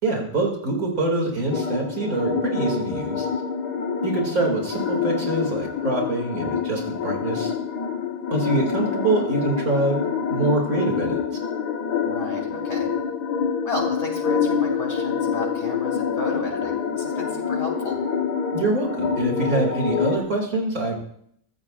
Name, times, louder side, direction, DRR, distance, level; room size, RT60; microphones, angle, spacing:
voice 1, 0.0-3.3 4.0-7.5 8.3-10.0 10.3-11.2 18.5-21.0, right 2 dB, 60° right, 0 dB, 2.9 m, -25 dB
sound 1, 1.5-20.2, left 6 dB, 75° left, 1.8 m, -26 dB
voice 2, 12.1-12.9 13.6-18.0, left 2 dB, 40° left, 0 dB, 3.4 m, -33 dB
23.0 x 14.5 x 2.5 m, 0.70 s
omnidirectional pair, 1.7 m